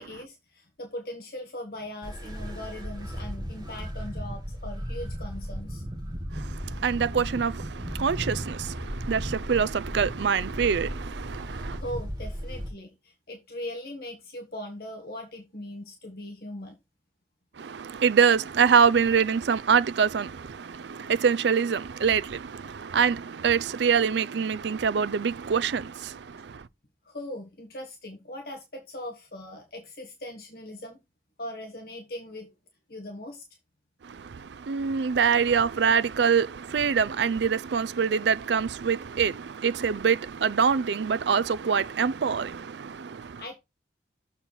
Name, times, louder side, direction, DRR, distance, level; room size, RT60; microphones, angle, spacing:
voice 1, 0.0-5.8 11.5-16.8 26.6-26.7 27.0-31.0 31.4-32.5 32.9-33.5 43.4-43.6, left 1 dB, 55° left, 1.6 m, -40 dB
sound 1, 2.0-12.7, equal, 20° right, 1.6 m, -35 dB
voice 2, 6.3-11.8 17.6-26.7 34.0-43.4, right 6 dB, 75° right, 0.4 m, -25 dB
7.0 x 4.4 x 5.6 m
head